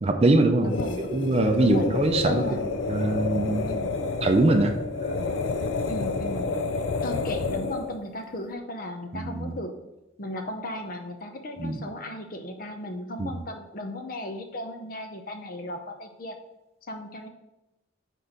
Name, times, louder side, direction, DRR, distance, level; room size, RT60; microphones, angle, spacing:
voice 1, 0.0-0.7 1.1-2.4 2.9-3.7 4.2-4.8 9.1-9.6 11.6-11.8 13.2-13.4, right 2 dB, 30° right, 6 dB, 0.5 m, -22 dB
sound 1, 0.6-8.0, left 4 dB, 85° left, 0.5 m, -29 dB
voice 2, 0.6-1.0 1.6-1.9 2.2-2.7 3.7-4.0 5.9-6.5 7.0-9.8 10.2-16.4 16.9-17.3, left 1 dB, 50° left, 5 dB, 0.7 m, -36 dB
4.5 x 4.1 x 5.0 m, 0.97 s
head